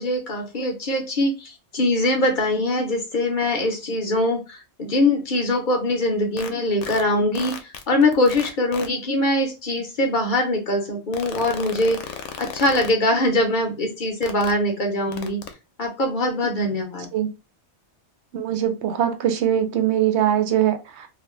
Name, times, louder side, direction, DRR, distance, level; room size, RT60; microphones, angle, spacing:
voice 1, 0.0-7.5 7.9-15.4 15.8-17.1, left 1 dB, 50° left, 2 dB, 0.7 m, -22 dB
sound 1, 6.4-6.5 6.8-7.0 7.3-8.9 11.1-12.9 14.2-14.5 15.1-15.5, left 8 dB, 85° left, 0.9 m, -33 dB
voice 2, 18.3-21.1, right 10 dB, 75° right, 8 dB, 0.9 m, -22 dB
2.6 x 2.4 x 3.0 m, 0.28 s
omnidirectional pair, 1.2 m